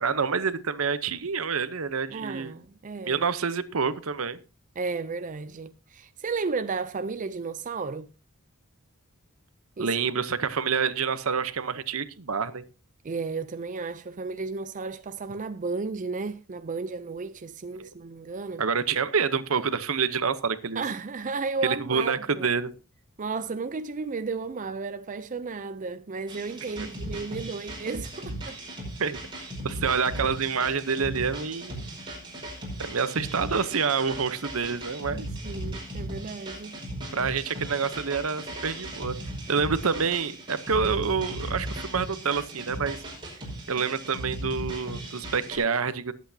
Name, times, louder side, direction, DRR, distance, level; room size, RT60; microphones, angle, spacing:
voice 1, 0.0-2.5 3.1-4.4 9.8-12.6 17.8-17.9 18.6-20.8 21.6-22.7 29.0-29.2 29.6-31.8 32.8-35.3 37.1-39.2 39.5-43.0 43.7-46.1, right 5 dB, 75° right, 0.9 m, -27 dB
voice 2, 2.1-3.2 4.8-8.1 9.8-9.9 13.0-18.6 20.8-22.5 23.2-28.6 35.1-36.8, right 4 dB, 35° right, 0.5 m, -33 dB
sound 1, 26.3-45.6, right 1 dB, 20° right, 5.3 m, -37 dB
19.5 x 8.3 x 2.8 m
head